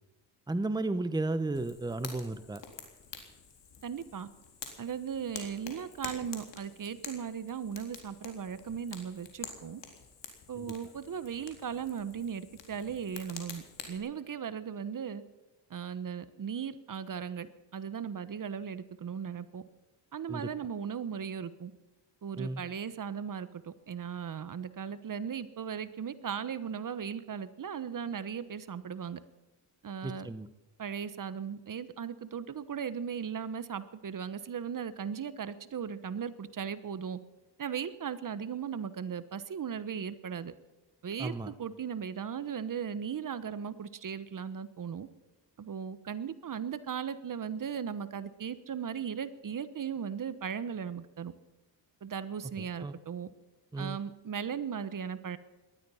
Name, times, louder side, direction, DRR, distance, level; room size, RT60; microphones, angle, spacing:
voice 1, 0.5-2.6 10.6-10.7 20.3-20.5 22.4-22.6 30.0-30.5 41.2-41.5 52.6-52.9 53.7-54.0, right 2 dB, 10° right, 11 dB, 0.9 m, -34 dB
Fire, 1.5-14.0, left 6 dB, 70° left, 3.8 m, -48 dB
voice 2, 3.8-4.3 4.8-9.8 10.5-15.2 15.7-17.5 17.7-19.6 20.1-21.7 22.2-29.2 29.8-30.3 30.8-37.2 37.6-40.5 41.0-45.1 45.6-51.3 52.0-53.3 53.8-55.4, right 7 dB, 45° right, 14 dB, 1.2 m, -37 dB
19.0 x 12.5 x 5.7 m, 1.1 s
cardioid pair, 85°, 44 cm